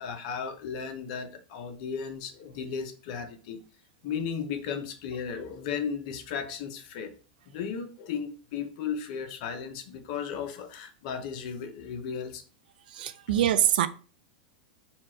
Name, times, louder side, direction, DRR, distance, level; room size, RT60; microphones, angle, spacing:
voice 1, 0.0-3.6 4.0-7.1 7.5-12.4, left 6 dB, 50° left, 0.8 m, -35 dB
voice 2, 13.0-13.9, right 11 dB, 75° right, 0.4 m, -24 dB
4.4 x 2.5 x 4.2 m
supercardioid pair, 145°, 5 cm